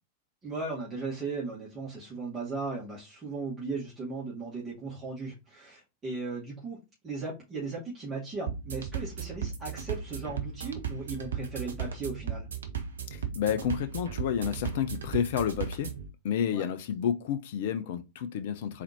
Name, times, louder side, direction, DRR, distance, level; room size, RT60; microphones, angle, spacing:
voice 1, 0.4-12.5 16.5-16.6, right 3 dB, 20° right, 2.2 m, -37 dB
sound 1, 8.5-16.1, right 7 dB, 65° right, 0.9 m, -36 dB
voice 2, 13.1-15.9 16.2-18.8, left 8 dB, 55° left, 0.5 m, -30 dB
4.1 x 4.1 x 2.9 m
figure-of-eight pair, 90°, 0 cm